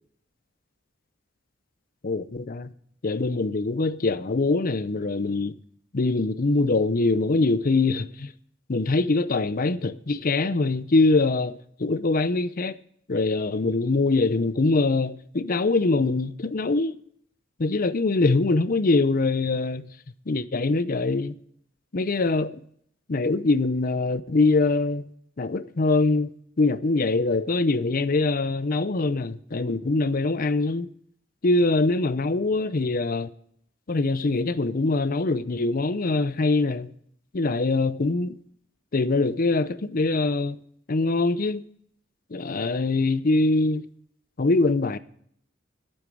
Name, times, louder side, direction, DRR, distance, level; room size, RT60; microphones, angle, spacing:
voice 1, 2.0-2.7 3.0-5.5 5.9-8.3 8.7-12.8 13.1-17.0 17.6-19.9 20.3-21.3 21.9-22.6 23.1-25.0 25.4-26.3 26.6-30.9 31.4-33.3 33.9-36.9 37.3-38.4 38.9-40.6 40.9-41.6 42.3-43.8 44.4-45.0, left 3 dB, 45° left, 0.6 m, -23 dB
11.5 x 8.9 x 6.2 m
head